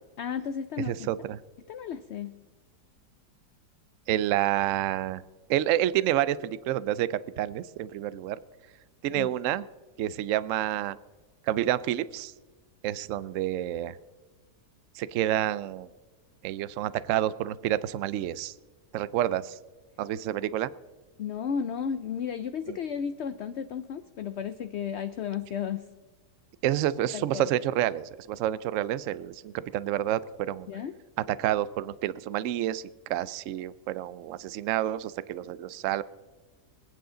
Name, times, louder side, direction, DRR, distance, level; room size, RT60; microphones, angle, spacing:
voice 1, 0.2-1.1 1.7-2.3 9.1-9.3 21.2-25.8 27.1-27.5 30.7-30.9, left 7 dB, 70° left, 11 dB, 0.6 m, -33 dB
voice 2, 0.8-1.4 4.1-5.2 5.5-8.4 9.0-9.6 10.0-11.0 11.5-12.3 12.8-14.0 14.9-15.9 16.4-18.5 18.9-19.6 20.0-20.7 22.7-22.8 26.6-30.7 31.3-32.8 33.1-36.0, right 12 dB, 65° right, 18 dB, 0.8 m, -29 dB
25.0 x 9.4 x 3.8 m, 1.3 s
omnidirectional pair, 1.7 m